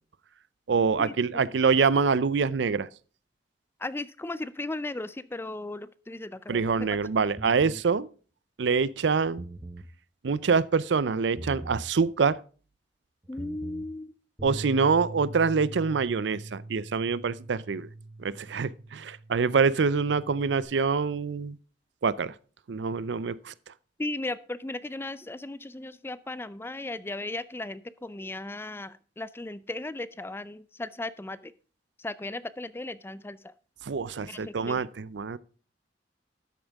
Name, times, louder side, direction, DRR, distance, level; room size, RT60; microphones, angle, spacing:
voice 1, 0.7-2.9 6.5-8.1 8.6-9.4 10.2-12.4 14.4-17.9 18.2-21.6 22.0-22.3 22.7-23.5 33.8-35.4, right 5 dB, 70° right, 0.5 m, -25 dB
voice 2, 3.8-7.0 13.3-14.1 24.0-31.5 32.0-33.5 34.2-34.8, left 2 dB, 15° left, 0.4 m, -36 dB
sound 1, 7.4-7.9 9.2-9.9 11.4-11.9 13.2-13.9, right 1 dB, 20° right, 0.7 m, -40 dB
Bass guitar, 14.4-20.6, right 2 dB, 5° right, 3.2 m, -42 dB
12.5 x 8.8 x 3.5 m
head